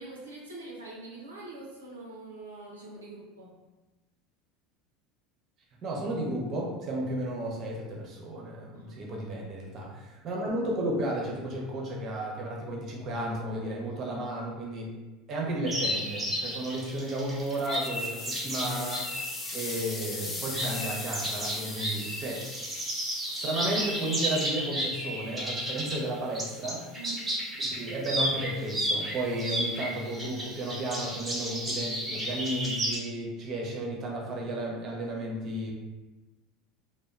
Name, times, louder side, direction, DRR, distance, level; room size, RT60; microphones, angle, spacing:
voice 1, 0.0-3.5 8.7-9.4 26.9-27.4, right 3 dB, 85° right, -4 dB, 0.4 m, -44 dB
voice 2, 5.8-14.9 15.3-19.3 19.5-22.5 23.3-26.9 27.8-35.7, right 1 dB, 40° right, -1 dB, 0.6 m, -33 dB
sound 1, 15.7-26.0 26.3-33.0, equal, 15° right, 0.9 m, -33 dB
sound 2, 17.4-24.5, left 3 dB, 30° left, 0.4 m, -40 dB
2.8 x 2.1 x 2.4 m, 1.1 s
figure-of-eight pair, 75°, 0 cm